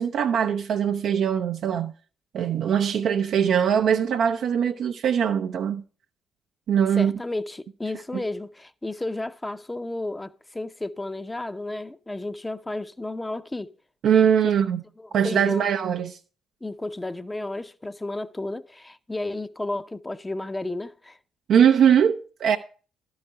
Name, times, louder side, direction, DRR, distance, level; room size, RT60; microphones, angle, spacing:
voice 1, 0.0-1.9 2.3-5.8 6.7-7.1 8.1-8.2 14.0-14.8 15.1-16.2 21.5-22.6, right 8 dB, 60° right, 0.5 m, -21 dB
voice 2, 7.0-13.7 15.0-15.6 16.6-21.2, left 2 dB, 15° left, 0.6 m, -32 dB
12.5 x 4.8 x 6.6 m
hypercardioid pair, 45°, 0 cm